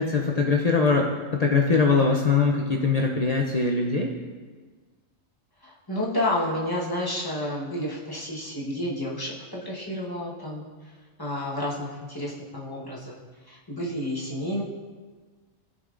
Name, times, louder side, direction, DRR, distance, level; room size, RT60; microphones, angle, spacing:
voice 1, 0.0-4.1, left 4 dB, 55° left, 0 dB, 0.4 m, -22 dB
voice 2, 5.6-13.1 13.4-14.6, left 1 dB, 20° left, -5 dB, 1.1 m, -30 dB
14.0 x 5.3 x 2.5 m, 1.4 s
omnidirectional pair, 1.3 m